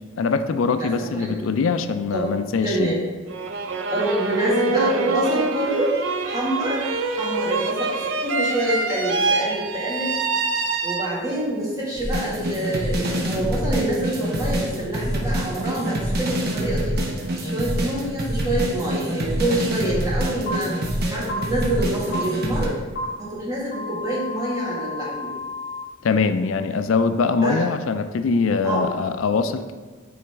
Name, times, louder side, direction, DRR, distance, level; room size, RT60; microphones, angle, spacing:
voice 1, 0.2-3.0 26.0-29.7, left 4 dB, 90° left, 10 dB, 0.4 m, -22 dB
voice 2, 0.7-1.4 2.1-2.3 2.6-3.0 3.9-5.9 6.2-6.8 7.1-10.1 10.8-16.9 17.4-20.7 21.1-22.7 23.2-25.3 27.4-27.6 28.6-28.9, right 1 dB, 20° right, -7 dB, 1.8 m, -26 dB
sound 1, 3.3-11.5, right 3 dB, 80° right, 0.6 m, -25 dB
sound 2, 12.0-22.7, equal, 50° right, 1.0 m, -26 dB
sound 3, 20.5-20.6 21.3-21.4 22.1-22.2 23.0-23.1 23.7-25.8, left 2 dB, 55° left, 1.2 m, -31 dB
8.6 x 3.9 x 3.4 m, 1.4 s
head